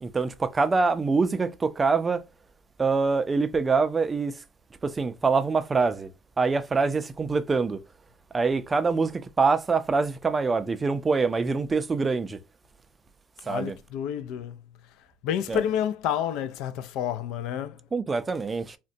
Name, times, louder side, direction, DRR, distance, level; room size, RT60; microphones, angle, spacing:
voice 1, 0.0-2.2 2.8-4.4 4.8-6.1 6.4-7.8 8.3-12.4 13.5-13.8 15.5-15.6 17.9-18.8, right 4 dB, 20° right, 0.4 m, -25 dB
voice 2, 13.4-14.6 15.2-17.8, left 9 dB, 75° left, 0.4 m, -29 dB
3.7 x 2.1 x 2.5 m
cardioid pair, 125°, 0 cm